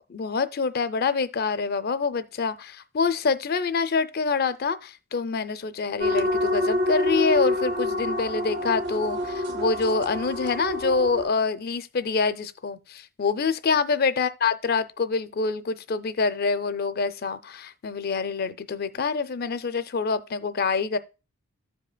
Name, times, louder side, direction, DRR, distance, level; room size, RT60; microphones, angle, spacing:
voice 1, 0.1-21.0, left 4 dB, 45° left, 0.4 m, -26 dB
sound 1, 6.0-11.3, left 1 dB, 55° right, 0.8 m, -27 dB
14.5 x 4.9 x 2.2 m
head